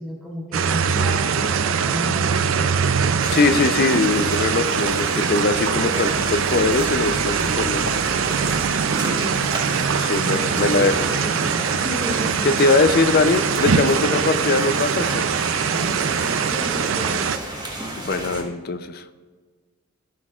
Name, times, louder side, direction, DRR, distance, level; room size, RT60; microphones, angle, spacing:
voice 1, 0.0-2.6 8.9-9.5 10.6-12.5 16.1-17.3 18.2-18.7, equal, ahead, -6 dB, 2.5 m, -34 dB
sound 1, 0.5-17.4, right 6 dB, 65° right, 0.4 m, -22 dB
sound 2, 3.2-18.4, right 1 dB, 20° right, 1.3 m, -32 dB
voice 2, 3.3-8.0 9.9-11.1 12.4-15.3 18.0-19.0, left 3 dB, 45° left, 11 dB, 0.5 m, -21 dB
13.5 x 6.3 x 2.4 m, 1.4 s
head